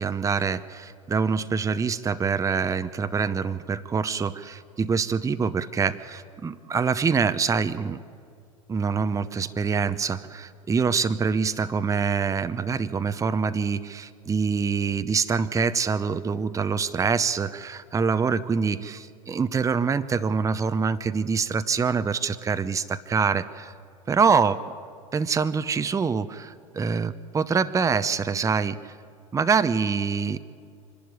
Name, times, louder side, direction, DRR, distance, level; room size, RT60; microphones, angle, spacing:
voice 1, 0.0-8.0 8.7-23.7 24.1-24.6 25.1-28.9 29.3-30.4, right 5 dB, 15° right, 12 dB, 0.8 m, -25 dB
25.0 x 12.0 x 9.6 m, 2.3 s
figure-of-eight pair, 80°, 19 cm